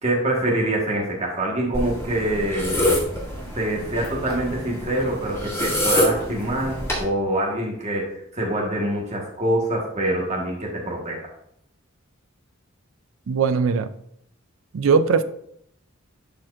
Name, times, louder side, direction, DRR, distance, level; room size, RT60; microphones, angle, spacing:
voice 1, 0.0-2.8 3.5-11.2, right 1 dB, 30° right, -2 dB, 1.4 m, -25 dB
sound 1, 1.7-7.0, left 1 dB, 15° left, 2.2 m, -26 dB
voice 2, 13.3-13.9 14.7-15.2, right 5 dB, 75° right, 11 dB, 0.4 m, -19 dB
12.0 x 4.3 x 2.5 m, 0.72 s
head